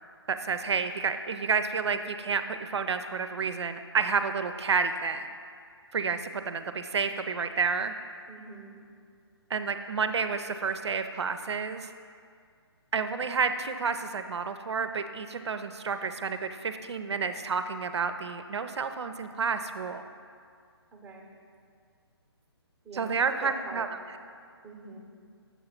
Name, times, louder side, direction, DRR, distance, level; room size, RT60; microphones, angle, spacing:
voice 1, 0.3-5.3 5.9-7.9 9.5-11.9 12.9-20.0 22.9-23.9, right 5 dB, 85° right, 9 dB, 0.4 m, -30 dB
voice 2, 8.3-8.7 20.9-21.3 22.8-23.9 24.6-25.0, right 3 dB, 5° right, 0 dB, 0.7 m, -43 dB
7.0 x 2.9 x 5.6 m, 2.2 s
hypercardioid pair, 145°, 14 cm